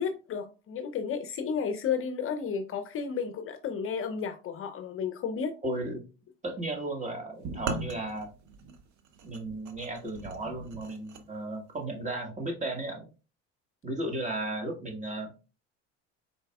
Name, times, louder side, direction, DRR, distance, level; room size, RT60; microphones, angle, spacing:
voice 1, 0.0-5.6, left 6 dB, 40° left, 0.6 m, -32 dB
voice 2, 5.6-6.0 6.4-8.3 9.2-13.1 13.8-15.3, right 1 dB, 20° right, 1.6 m, -35 dB
sound 1, 7.4-11.2, right 4 dB, 55° right, 0.9 m, -39 dB
4.5 x 4.1 x 2.3 m
supercardioid pair, 85°, 34 cm